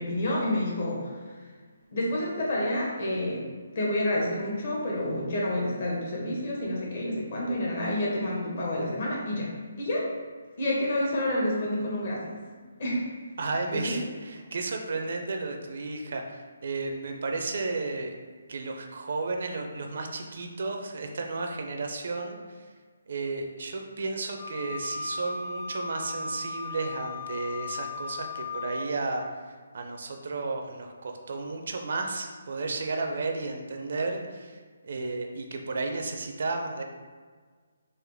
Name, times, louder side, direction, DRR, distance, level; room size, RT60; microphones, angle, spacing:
voice 1, 0.0-1.5 1.9-3.4 3.7-9.5 9.8-10.1 10.6-12.3 12.8-13.0 13.7-14.0, left 1 dB, 45° left, -4 dB, 1.1 m, -29 dB
voice 2, 13.4-18.2 18.5-22.6 23.1-36.8, right 3 dB, 55° right, 3 dB, 0.4 m, -33 dB
Wind instrument woodwind instrument, 24.4-28.9, left 4 dB, 5° left, 0.5 m, -36 dB
3.7 x 2.5 x 3.4 m, 1.5 s
hypercardioid pair, 165°, 0 cm